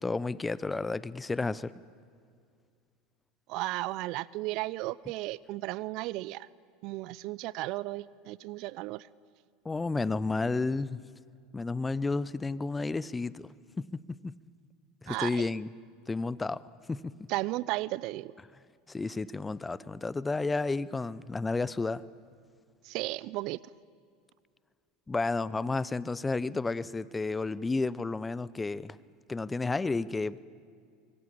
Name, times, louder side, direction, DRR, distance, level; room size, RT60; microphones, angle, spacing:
voice 1, 0.0-1.7 9.6-11.0 11.5-13.5 13.8-14.3 15.0-15.7 16.1-16.6 16.9-17.1 18.9-22.0 25.1-29.0 29.3-30.4, left 3 dB, 15° left, 19 dB, 0.7 m, -31 dB
voice 2, 3.5-6.5 6.8-9.1 15.1-15.4 17.3-18.3 22.9-23.6, right 19 dB, 55° right, 21 dB, 0.6 m, -34 dB
25.0 x 22.0 x 8.7 m, 2.2 s
hypercardioid pair, 80°, 0 cm